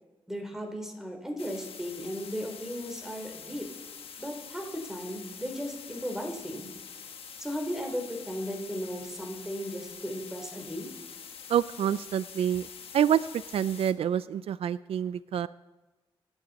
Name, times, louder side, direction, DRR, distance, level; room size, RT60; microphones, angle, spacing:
voice 1, 0.3-3.7 4.2-6.7 7.4-10.9, equal, 5° right, 2 dB, 3.5 m, -36 dB
sound 1, 1.4-13.9, left 6 dB, 80° left, 1.2 m, -45 dB
voice 2, 11.5-12.7 12.9-13.2 13.5-15.5, right 9 dB, 85° right, 16 dB, 0.4 m, -27 dB
25.5 x 10.5 x 4.1 m, 1.1 s
wide cardioid pair, 100°, 10 cm